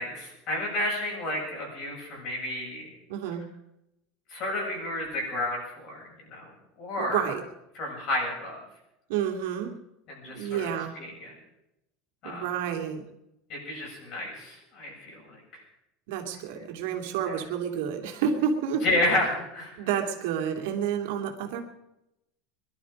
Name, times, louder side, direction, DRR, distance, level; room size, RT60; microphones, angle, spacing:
voice 1, 0.0-2.9 4.3-6.5 6.8-7.2 7.7-8.6 10.1-10.7 11.0-11.4 12.2-12.5 13.5-15.6 17.3-17.4 18.8-19.7, left 1 dB, 40° left, -2 dB, 7.2 m, -31 dB
voice 2, 3.1-3.4 7.0-7.4 9.1-9.7 10.2-10.9 12.2-13.0 16.1-18.8 19.8-21.6, right 8 dB, 70° right, 3 dB, 2.4 m, -29 dB
22.0 x 12.0 x 5.1 m, 0.87 s
supercardioid pair, 175°, 0 cm